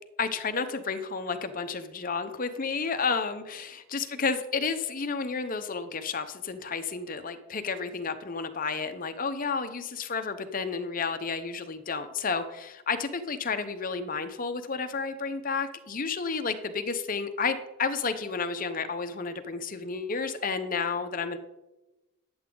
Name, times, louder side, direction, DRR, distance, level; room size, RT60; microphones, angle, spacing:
voice 1, 0.2-21.4, left 5 dB, 40° left, 9 dB, 0.8 m, -31 dB
12.0 x 7.9 x 3.9 m, 1.0 s
head